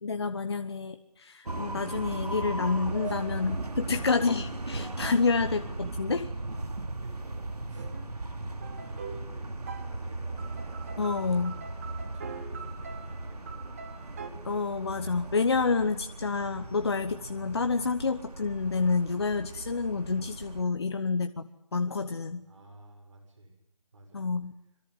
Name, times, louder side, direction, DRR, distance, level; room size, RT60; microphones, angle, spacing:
voice 1, 0.0-6.3 11.0-11.5 14.4-22.4 24.1-24.5, left 4 dB, 40° left, 9 dB, 1.1 m, -29 dB
sound 1, 1.5-20.6, right 2 dB, 70° right, 2.9 m, -37 dB
voice 2, 3.0-3.5 6.5-10.5 12.0-14.0 22.4-23.5 23.9-24.3, right 2 dB, 50° right, 4 dB, 6.8 m, -53 dB
sound 2, 7.8-8.1 8.6-9.4 9.7-9.9 10.4-14.3, right 6 dB, 20° right, 1.5 m, -44 dB
26.0 x 23.5 x 9.6 m, 0.77 s
figure-of-eight pair, 160°, 21 cm